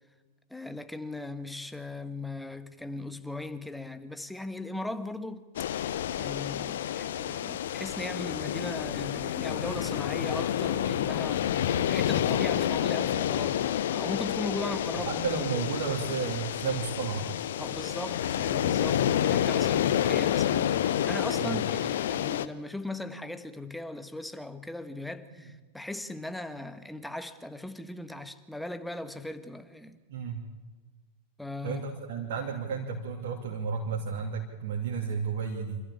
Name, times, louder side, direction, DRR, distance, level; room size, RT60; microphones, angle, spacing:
voice 1, 0.5-5.5 6.2-15.1 17.6-30.0 31.4-31.9, left 2 dB, 5° left, 1.4 m, -38 dB
sound 1, 5.5-22.5, left 10 dB, 60° left, 0.8 m, -29 dB
voice 2, 14.6-17.3 21.3-21.6 30.1-30.4 31.6-35.8, right 6 dB, 55° right, 2.6 m, -33 dB
25.5 x 14.5 x 8.7 m
figure-of-eight pair, 90°, 0 cm